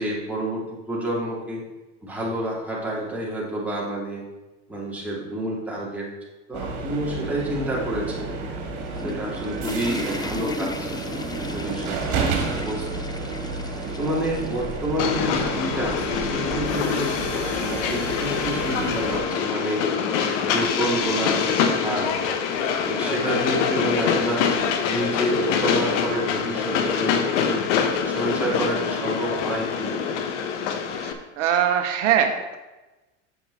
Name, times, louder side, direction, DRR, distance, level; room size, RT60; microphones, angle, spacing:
voice 1, 0.0-1.6 2.0-4.2 4.7-6.1 6.5-8.3 9.0-12.9 14.0-17.1 17.6-19.8 20.4-22.2 22.8-24.5 24.9-27.6 28.0-30.1, right 1 dB, 5° right, -6 dB, 2.9 m, -29 dB
sound 1, 6.5-19.2, right 4 dB, 55° right, 2.2 m, -31 dB
sound 2, 8.7-18.9, left 3 dB, 10° left, 0.4 m, -37 dB
Train, 15.0-31.1, left 7 dB, 75° left, 1.1 m, -25 dB
voice 2, 31.0-32.6, right 9 dB, 80° right, 6 dB, 1.0 m, -22 dB
7.7 x 7.0 x 4.2 m, 1.1 s
supercardioid pair, 105°, 36 cm